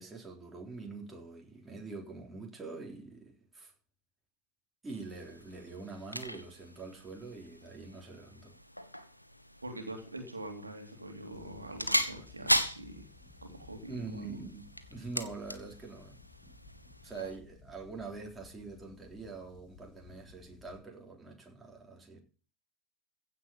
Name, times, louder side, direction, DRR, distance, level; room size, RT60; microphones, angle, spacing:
voice 1, 0.0-3.7 4.8-8.5 13.9-16.2 17.0-22.2, right 4 dB, 10° right, 3.7 m, -44 dB
sound 1, 4.9-17.4, equal, 90° left, 1.1 m, -38 dB
voice 2, 9.6-13.0 13.4-14.4, right 1 dB, 80° right, 2.7 m, -44 dB
sound 2, 11.3-20.8, left 4 dB, 30° left, 3.3 m, -57 dB
15.5 x 5.4 x 8.7 m
figure-of-eight pair, 90°, 0 cm